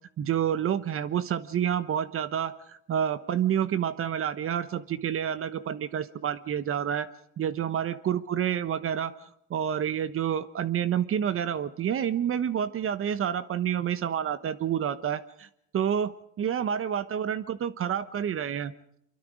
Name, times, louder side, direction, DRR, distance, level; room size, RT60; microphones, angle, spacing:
voice 1, 0.2-7.1 7.4-15.5 15.7-18.7, right 9 dB, 40° right, 13 dB, 1.1 m, -29 dB
24.5 x 23.5 x 5.1 m, 0.74 s
supercardioid pair, 90°, 33 cm